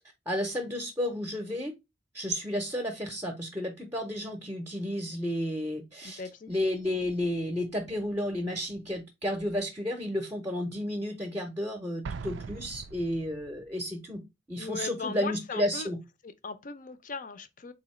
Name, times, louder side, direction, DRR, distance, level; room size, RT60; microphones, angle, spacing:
voice 1, 0.3-1.7 2.1-6.2 6.5-14.2 14.5-16.0, equal, 15° right, 0.6 m, -32 dB
voice 2, 6.0-6.5 14.6-15.9 16.2-17.7, left 4 dB, 45° left, 0.5 m, -38 dB
Explosion, 12.0-13.7, right 5 dB, 90° right, 0.4 m, -41 dB
3.9 x 2.7 x 4.2 m
head